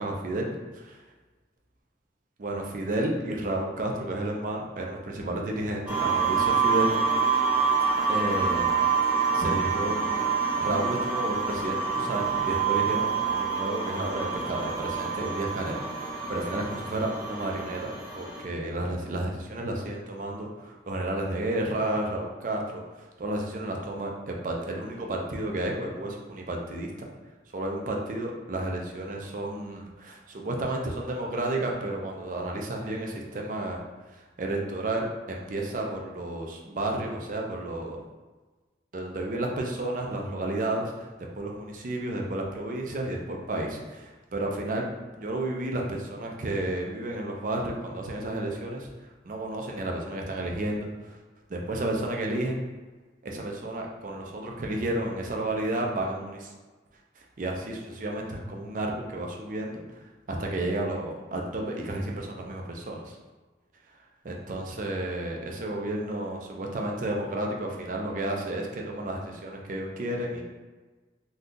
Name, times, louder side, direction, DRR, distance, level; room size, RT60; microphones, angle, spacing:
voice 1, 0.0-1.0 2.4-6.9 8.1-8.7 9.3-10.3 10.6-17.9 18.2-27.1 27.5-33.8 34.1-38.0 38.9-41.1 41.4-44.8 45.2-48.9 49.2-51.2 51.5-52.6 53.2-56.5 57.2-60.0 60.3-63.2 64.2-70.4, right 1 dB, 45° right, 0 dB, 0.4 m, -32 dB
sound 1, 5.9-18.4, right 5 dB, 10° right, 0.7 m, -27 dB
2.6 x 2.3 x 3.6 m, 1.3 s
head